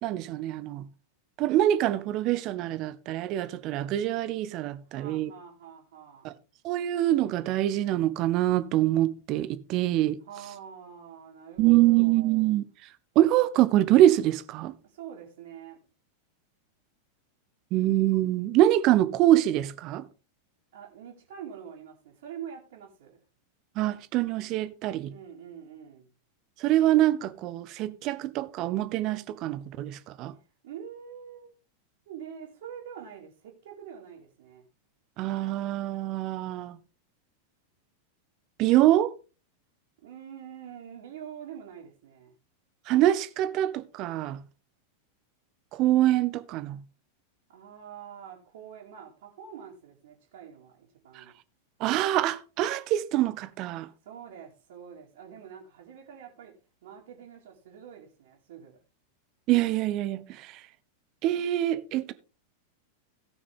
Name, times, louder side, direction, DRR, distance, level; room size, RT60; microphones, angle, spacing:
voice 1, 0.0-0.9 1.4-5.3 6.2-6.3 6.6-10.2 11.6-12.9 13.1-14.7 17.7-20.0 23.8-25.1 26.6-30.3 35.2-36.8 38.6-39.1 42.9-44.4 45.7-46.8 51.1-51.2 51.8-53.9 59.5-60.6 61.2-62.1, right 14 dB, 40° right, 0.9 m, -25 dB
voice 2, 4.9-6.3 10.2-12.5 14.8-15.8 20.7-23.2 25.1-26.1 30.6-31.5 32.1-34.7 40.0-42.3 47.5-51.4 54.0-56.5 56.8-58.8, right 8 dB, 55° right, 2.7 m, -45 dB
17.5 x 6.1 x 3.6 m
figure-of-eight pair, 90°, 0 cm